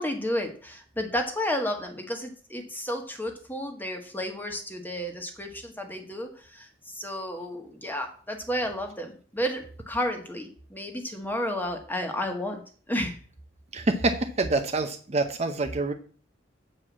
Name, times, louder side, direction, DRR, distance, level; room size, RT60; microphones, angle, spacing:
voice 1, 0.0-12.6 12.9-13.2, equal, 10° left, 3 dB, 1.5 m, -32 dB
voice 2, 13.7-15.9, right 3 dB, 35° right, 6 dB, 0.7 m, -26 dB
7.8 x 4.9 x 7.3 m, 0.42 s
head